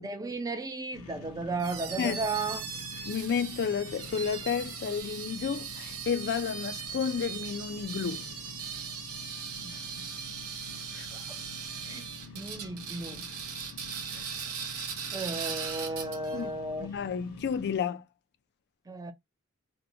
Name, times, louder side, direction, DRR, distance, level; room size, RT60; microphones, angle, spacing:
voice 1, 0.0-2.7 9.6-10.1 11.1-11.4 11.8-12.0 12.3-13.3 14.5-14.8 15.1-16.9 18.9-19.1, right 3 dB, 15° right, 0.4 m, -35 dB
sound 1, 0.9-17.8, left 3 dB, 75° left, 0.8 m, -48 dB
sound 2, 1.6-16.4, right 7 dB, 75° right, 0.7 m, -39 dB
voice 2, 3.1-8.2 10.9-11.1 14.1-14.3 16.3-16.5 16.8-18.0, left 6 dB, 50° left, 0.4 m, -31 dB
2.7 x 2.2 x 2.7 m
head